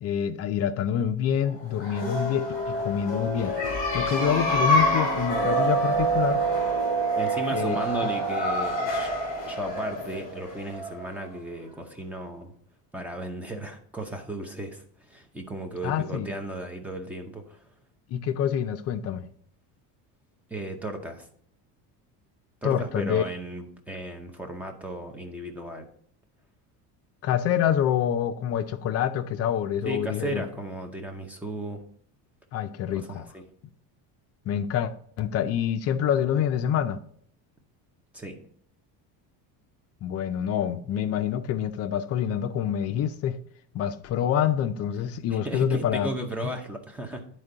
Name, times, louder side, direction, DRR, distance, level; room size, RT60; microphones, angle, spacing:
voice 1, 0.0-3.6 3.9-6.4 7.5-7.8 15.8-16.3 18.1-19.3 22.6-23.2 27.2-30.4 32.5-33.2 34.5-34.9 35.2-37.0 40.0-43.4 43.7-46.1, left 9 dB, 40° left, 0.4 m, -26 dB
sound 1, 1.7-11.3, right 1 dB, 20° left, 2.4 m, -26 dB
voice 2, 7.2-9.1 9.5-12.5 12.9-17.7 20.5-21.3 22.6-25.9 29.8-31.8 32.9-33.4 38.1-38.4 45.3-47.2, right 1 dB, 5° right, 0.6 m, -35 dB
9.9 x 4.4 x 3.8 m
cardioid pair, 170°, 40 cm